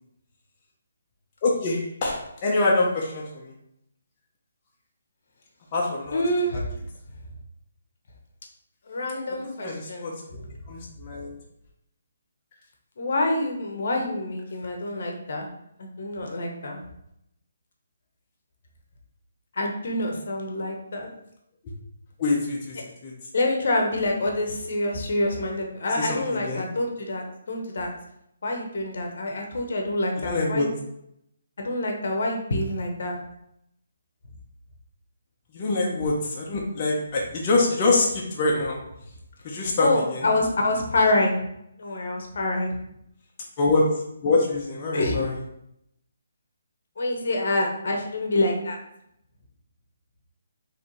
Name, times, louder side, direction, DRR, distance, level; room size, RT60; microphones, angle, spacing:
voice 1, 1.4-3.5 5.7-6.2 9.6-10.4 10.7-11.4 22.2-22.8 23.0-23.1 26.0-26.6 30.2-30.7 35.5-38.8 39.4-40.3 43.6-43.8 44.2-45.4, left 3 dB, 30° left, -3 dB, 0.8 m, -25 dB
voice 2, 6.1-6.6 8.9-10.1 13.0-15.5 15.8-16.8 19.6-21.1 23.3-27.9 28.4-30.7 31.6-33.2 39.8-41.4 41.8-42.7 44.9-45.2 47.0-48.8, left 2 dB, 65° left, 2 dB, 1.0 m, -26 dB
4.3 x 3.2 x 3.1 m, 0.77 s
hypercardioid pair, 155°, 0 cm